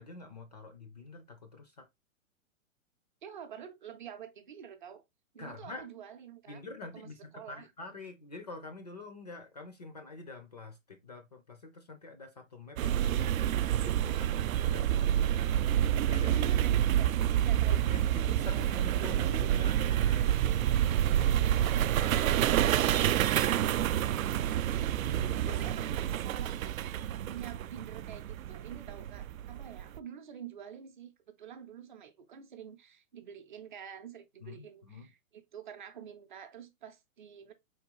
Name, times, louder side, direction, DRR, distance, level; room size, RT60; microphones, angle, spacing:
voice 1, 0.0-1.9 5.4-5.9 6.5-15.5 16.1-16.5 17.7-23.9 25.0-25.6 34.4-35.1, left 3 dB, 30° left, 0.4 m, -47 dB
voice 2, 3.2-5.0 5.3-6.6 6.9-7.1 7.3-7.7 16.3-17.1 17.4-18.0 18.5-18.8 25.5-26.6 27.1-37.5, right 8 dB, 35° right, 0.6 m, -48 dB
sound 1, 12.8-30.0, right 11 dB, 80° right, 0.5 m, -28 dB
4.5 x 3.6 x 2.9 m
hypercardioid pair, 165°, 41 cm